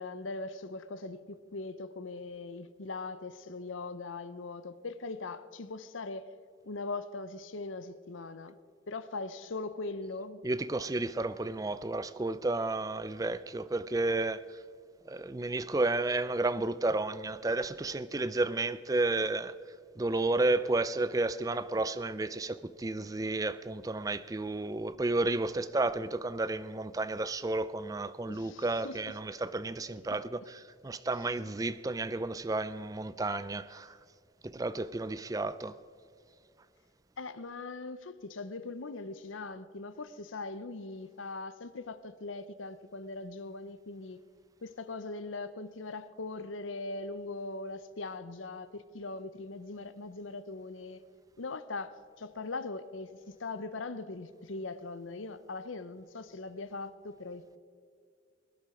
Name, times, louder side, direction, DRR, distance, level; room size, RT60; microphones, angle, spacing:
voice 1, 0.0-6.4 6.6-8.5 8.9-10.4 28.3-29.0 30.0-30.2 37.2-44.2 44.6-51.0 51.4-57.6, left 3 dB, 85° left, 0.7 m, -40 dB
voice 2, 10.4-14.4 15.1-19.5 20.0-34.0 34.4-35.8, right 2 dB, 20° right, 0.4 m, -32 dB
20.0 x 10.5 x 5.0 m
head